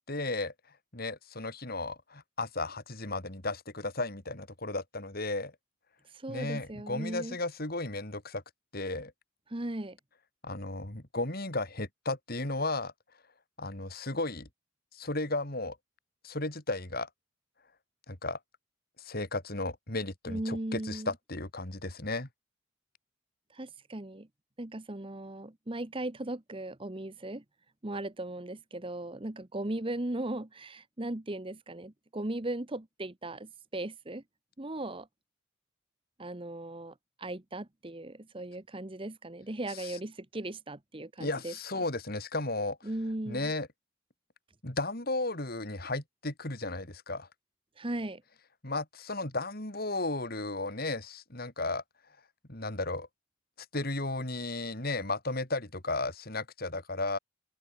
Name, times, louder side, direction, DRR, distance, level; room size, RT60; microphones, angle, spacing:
voice 1, 0.1-0.5 0.9-5.5 6.3-8.4 8.7-9.1 10.4-12.9 13.6-14.5 14.9-15.8 16.2-17.1 18.1-18.4 19.0-22.3 39.8-40.0 41.2-42.9 43.3-43.7 44.6-47.3 48.6-51.8 52.5-53.1 53.7-57.2, left 2 dB, 45° left, 3.4 m, -34 dB
voice 2, 6.1-7.4 9.5-10.0 20.3-21.1 23.5-24.3 24.6-27.4 27.8-34.2 34.6-35.1 36.2-41.8 42.8-43.5 47.8-48.2, right 1 dB, 25° right, 1.0 m, -37 dB
open air
head